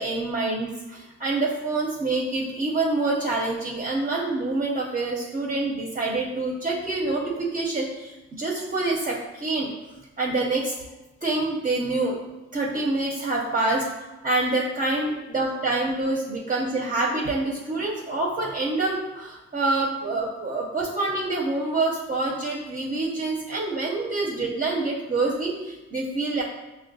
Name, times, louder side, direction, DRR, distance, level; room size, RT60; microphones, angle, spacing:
voice 1, 0.0-9.7 10.2-10.7 11.2-12.2 12.5-26.4, right 2 dB, 30° right, -2 dB, 0.5 m, -26 dB
5.9 x 2.1 x 2.6 m, 1.1 s
cardioid pair, 90°, 30 cm